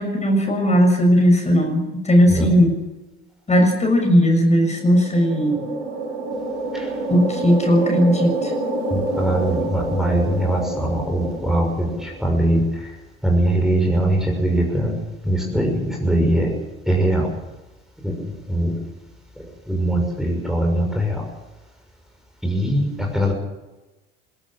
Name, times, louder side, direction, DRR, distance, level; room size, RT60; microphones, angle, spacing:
voice 1, 0.0-2.8 3.5-5.6 7.1-8.5, equal, 25° left, 4 dB, 6.9 m, -17 dB
sound 1, 4.7-12.4, right 2 dB, 85° right, 7.8 m, -28 dB
voice 2, 8.9-11.9 12.2-12.6 13.2-14.9 15.3-16.5 16.9-17.3 18.0-18.1 18.5-18.7 19.7-21.1 22.4-22.9 23.1-23.3, right 1 dB, ahead, 1 dB, 6.2 m, -21 dB
22.0 x 17.0 x 7.6 m, 1.1 s
hypercardioid pair, 70°, 29 cm